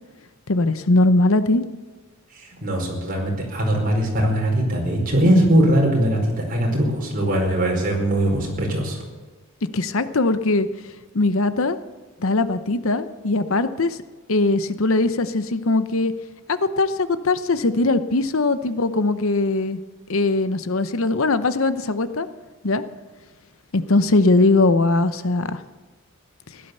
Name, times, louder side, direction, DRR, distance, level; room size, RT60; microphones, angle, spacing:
voice 1, 0.5-1.6 9.7-10.7 11.1-11.8 12.2-14.0 14.3-16.1 16.5-19.8 20.1-22.3 22.6-22.8 23.7-25.6 26.5-26.6, left 2 dB, 65° left, 12 dB, 0.8 m, -20 dB
voice 2, 2.6-9.0, right 1 dB, 40° right, 0 dB, 4.9 m, -20 dB
16.5 x 12.0 x 6.8 m, 1.3 s
head